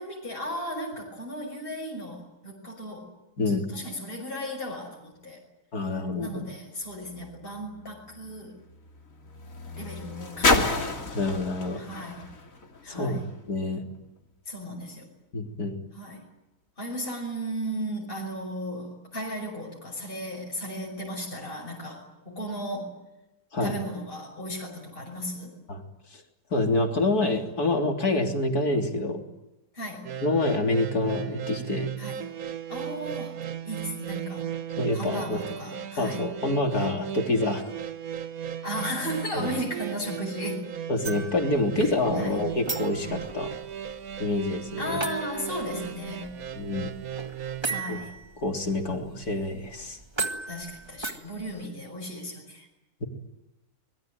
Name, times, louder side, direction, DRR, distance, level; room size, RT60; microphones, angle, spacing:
voice 1, 0.0-3.1 3.7-5.4 6.2-8.5 9.8-10.8 11.8-12.3 12.8-13.2 14.5-15.1 15.9-16.2 16.8-22.9 23.6-25.5 29.7-30.1 32.0-32.2 32.7-33.4 33.6-34.5 34.9-36.3 38.6-40.6 41.7-42.4 44.8-46.4 47.6-48.1 50.5-52.7, equal, 35° left, -2 dB, 6.1 m, -35 dB
voice 2, 5.7-6.5 10.6-10.7 11.1-11.8 12.9-13.2 13.5-13.8 15.3-15.8 23.5-23.7 25.7-25.8 26.1-26.2 26.5-29.2 30.2-31.9 34.8-35.4 36.0-37.7 39.3-39.5 40.9-43.6 44.2-45.0 46.6-46.9 47.9-48.0 48.4-50.0, left 2 dB, 85° left, 3 dB, 3.9 m, -27 dB
sound 1, 6.9-13.4 14.2-14.3, left 3 dB, 60° left, 3.2 m, -31 dB
sound 2, 30.0-47.8, right 9 dB, 70° right, 1.6 m, -36 dB
sound 3, 41.0-51.6, right 3 dB, 20° right, 1.8 m, -38 dB
25.0 x 21.5 x 9.3 m, 0.95 s
omnidirectional pair, 1.6 m